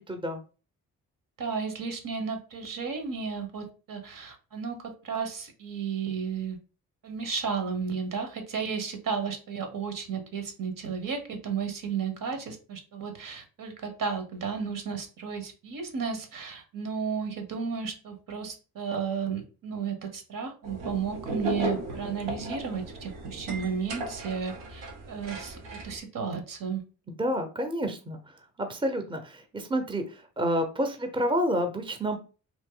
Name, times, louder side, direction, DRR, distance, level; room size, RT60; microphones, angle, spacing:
voice 1, 1.4-6.6 7.0-26.8, right 6 dB, 55° right, 5 dB, 1.2 m, -33 dB
sound 1, 20.6-26.0, right 1 dB, 80° right, 1.0 m, -36 dB
voice 2, 27.2-28.2 28.6-30.0 30.4-32.2, equal, 10° right, 6 dB, 0.8 m, -28 dB
2.9 x 2.5 x 3.8 m, 0.35 s
hypercardioid pair, 50°, 40 cm